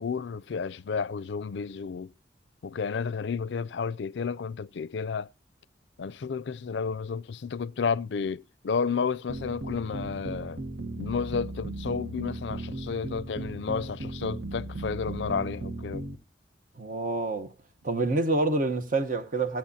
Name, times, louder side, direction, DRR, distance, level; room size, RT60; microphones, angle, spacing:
voice 1, 0.0-2.1 2.6-5.3 6.0-10.6 11.0-16.0, left 5 dB, 70° left, 0.4 m, -31 dB
sound 1, 9.3-16.2, right 2 dB, 70° right, 1.2 m, -37 dB
voice 2, 16.8-17.5 17.8-19.6, right 2 dB, 50° right, 1.1 m, -27 dB
16.0 x 8.9 x 2.8 m
head